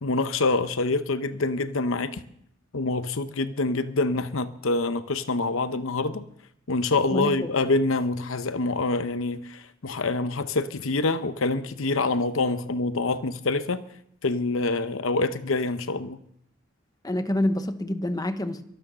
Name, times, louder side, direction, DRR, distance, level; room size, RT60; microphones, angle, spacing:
voice 1, 0.0-2.2 2.7-6.2 6.7-13.8 14.2-16.2, left 3 dB, 70° left, 0.8 m, -26 dB
voice 2, 7.1-7.5 17.0-18.6, left 1 dB, 20° left, 1.0 m, -27 dB
23.5 x 9.0 x 6.2 m
head